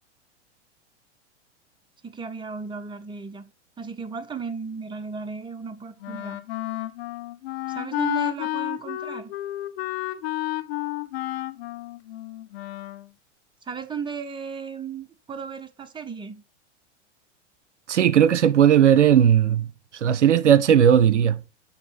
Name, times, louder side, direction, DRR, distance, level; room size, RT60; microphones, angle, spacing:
voice 1, 2.0-3.5 3.8-6.4 7.7-9.4 13.7-16.4, right 5 dB, 15° right, 1.1 m, -35 dB
Wind instrument woodwind instrument, 6.0-13.1, left 15 dB, 60° left, 0.8 m, -31 dB
voice 2, 17.9-19.7 19.9-21.4, right 9 dB, 75° right, 0.7 m, -17 dB
11.5 x 4.1 x 5.8 m
figure-of-eight pair, 90°, 35 cm